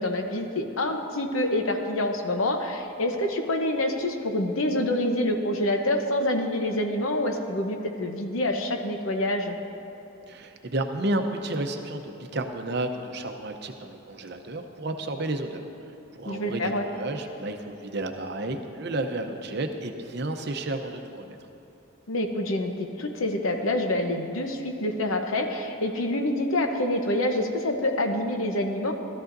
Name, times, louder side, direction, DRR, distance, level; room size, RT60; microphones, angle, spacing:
voice 1, 0.0-9.6 16.3-16.8 22.1-28.9, left 1 dB, 80° left, 4 dB, 0.9 m, -27 dB
voice 2, 10.3-21.4, right 2 dB, 50° right, 5 dB, 0.7 m, -32 dB
16.5 x 12.5 x 2.6 m, 2.9 s
head